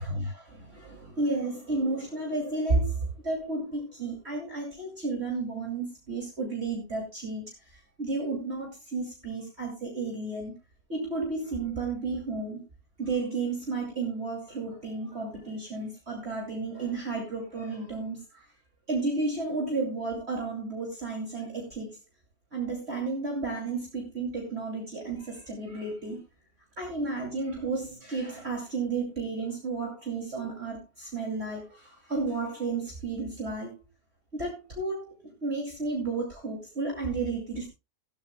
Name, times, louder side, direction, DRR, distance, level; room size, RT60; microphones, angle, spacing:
voice 1, 0.0-10.5 10.9-12.6 13.0-18.5 18.9-22.0 22.5-26.2 26.8-33.8 34.3-37.7, right 3 dB, 45° right, 0 dB, 3.0 m, -32 dB
15.5 x 14.5 x 2.2 m, 0.25 s
omnidirectional pair, 1.5 m